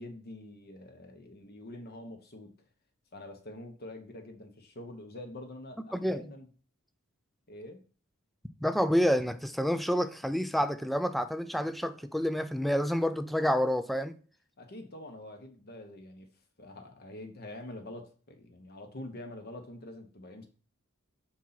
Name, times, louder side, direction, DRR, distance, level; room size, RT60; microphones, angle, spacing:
voice 1, 0.0-2.5 3.1-6.5 7.5-7.8 14.6-16.3 16.6-20.5, left 1 dB, 50° left, 1.1 m, -45 dB
voice 2, 5.9-6.3 8.6-14.1, equal, ahead, 0.3 m, -28 dB
5.7 x 4.5 x 4.0 m
head